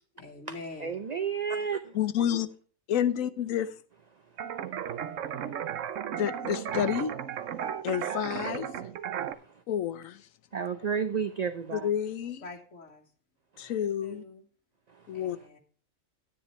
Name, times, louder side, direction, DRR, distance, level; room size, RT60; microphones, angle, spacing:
voice 1, 0.1-1.0 12.4-13.1 14.0-14.4 15.1-15.6, left 2 dB, 65° left, 1.7 m, -45 dB
voice 2, 0.8-1.9 10.5-11.9, right 6 dB, 40° right, 0.6 m, -31 dB
voice 3, 1.9-2.5 2.9-3.7 6.2-7.1 7.8-8.7 9.7-10.3 11.7-12.4 13.6-14.2 15.1-15.4, left 9 dB, 85° left, 1.2 m, -29 dB
sound 1, 4.4-9.3, right 9 dB, 70° right, 1.1 m, -35 dB
11.0 x 10.0 x 3.1 m
omnidirectional pair, 1.4 m